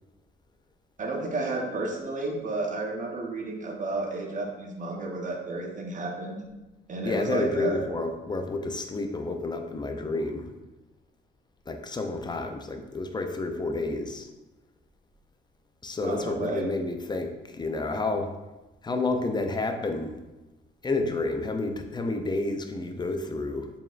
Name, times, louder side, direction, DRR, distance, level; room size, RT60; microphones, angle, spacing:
voice 1, 1.0-6.4 6.9-7.8 16.0-16.7, right 2 dB, 40° right, 0 dB, 0.9 m, -32 dB
voice 2, 7.1-10.5 11.7-14.3 15.8-18.3 18.8-20.2 20.8-23.7, left 2 dB, 20° left, 5 dB, 0.5 m, -30 dB
4.5 x 3.5 x 2.4 m, 1.1 s
cardioid pair, 90°, 20 cm